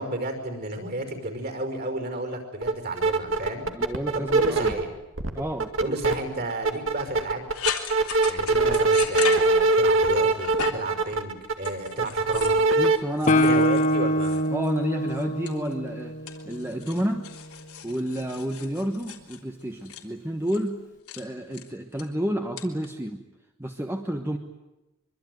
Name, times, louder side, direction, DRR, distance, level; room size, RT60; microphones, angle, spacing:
voice 1, 0.0-3.7 4.1-4.9 5.8-7.4 8.2-12.6 13.2-14.4, right 1 dB, 45° right, 6 dB, 5.3 m, -32 dB
sound 1, 2.6-2.7 3.0-4.8 5.2-6.1 6.5-13.0, right 3 dB, 60° right, 2.1 m, -22 dB
voice 2, 3.7-4.7 5.3-6.0 8.5-8.8 12.7-13.6 14.5-16.2 16.4-17.2 17.8-20.8 21.1-23.2 23.6-24.4, equal, 10° right, 3 dB, 1.3 m, -30 dB
sound 2, 7.5-10.0 10.3-11.0 11.6-12.6 13.2-14.8 15.1-15.9 16.3-20.0 20.5-20.7 21.1-21.2 21.5-22.0 22.6-22.9, left 8 dB, 80° left, 3.6 m, -36 dB
Guitar, 13.3-16.9, equal, 35° left, 1.1 m, -24 dB
24.5 x 24.5 x 9.4 m, 0.98 s
head